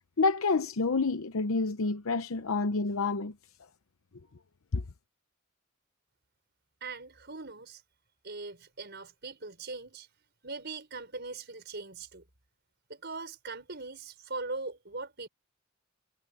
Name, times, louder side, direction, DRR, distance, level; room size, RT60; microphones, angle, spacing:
voice 1, 0.2-3.3 4.7-4.8, left 3 dB, 85° left, 0.8 m, -28 dB
voice 2, 6.8-7.8 8.2-10.1 10.4-12.2 12.9-15.3, right 3 dB, 55° right, 5.4 m, -40 dB
head